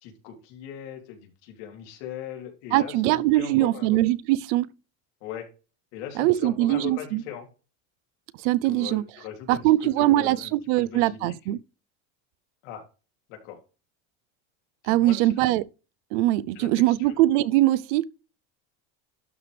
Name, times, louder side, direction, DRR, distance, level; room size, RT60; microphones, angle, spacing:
voice 1, 0.0-4.0 5.2-5.5 5.9-7.5 8.6-10.5 10.8-11.3 12.6-12.9 13.3-13.6 14.8-15.4 16.5-17.1, left 9 dB, 85° left, 3.3 m, -40 dB
voice 2, 2.7-4.7 6.2-7.2 8.4-9.0 9.5-11.6 14.8-15.7 16.1-18.0, right 16 dB, 80° right, 0.6 m, -22 dB
12.0 x 5.0 x 3.3 m
cardioid pair, 175°, 36 cm